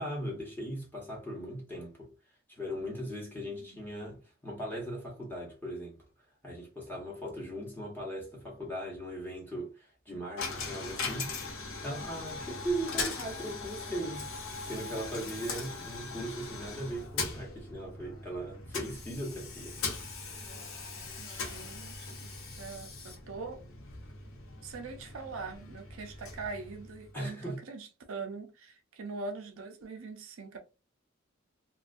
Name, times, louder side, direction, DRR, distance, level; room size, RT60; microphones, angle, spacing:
voice 1, 0.0-2.1 2.5-6.0 6.4-11.3 11.8-14.3 14.6-19.8 27.1-27.6, right 1 dB, 10° left, 0.9 m, -38 dB
Coin (dropping), 10.4-27.3, left 4 dB, 85° left, 0.7 m, -40 dB
voice 2, 21.2-22.3 22.6-23.6 24.6-30.6, right 4 dB, 80° right, 0.5 m, -42 dB
2.3 x 2.2 x 2.4 m
head